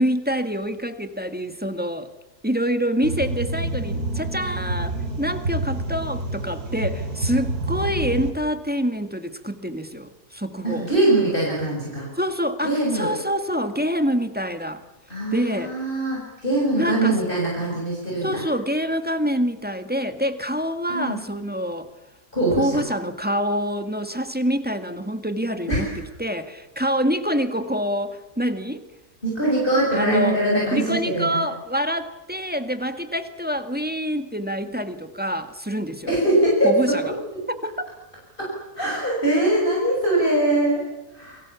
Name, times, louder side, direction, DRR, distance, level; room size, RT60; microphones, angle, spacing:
voice 1, 0.0-2.1 2.4-10.9 12.1-14.8 15.3-15.7 16.7-17.2 18.2-21.9 22.5-28.8 29.9-30.4 30.7-36.1 36.6-37.1 37.5-37.9, equal, 5° right, 8 dB, 1.7 m, -26 dB
sound 1, 3.0-8.3, right 2 dB, 85° right, 3.3 m, -28 dB
voice 2, 10.6-12.1 12.6-13.1 15.1-18.4 20.9-21.2 22.3-22.8 25.7-25.9 29.2-31.4 36.1-36.8 37.0-37.4 38.4-38.5 38.8-40.8 41.1-41.4, right 1 dB, 35° left, -3 dB, 7.1 m, -22 dB
29.0 x 23.0 x 7.2 m, 1.0 s
omnidirectional pair, 1.6 m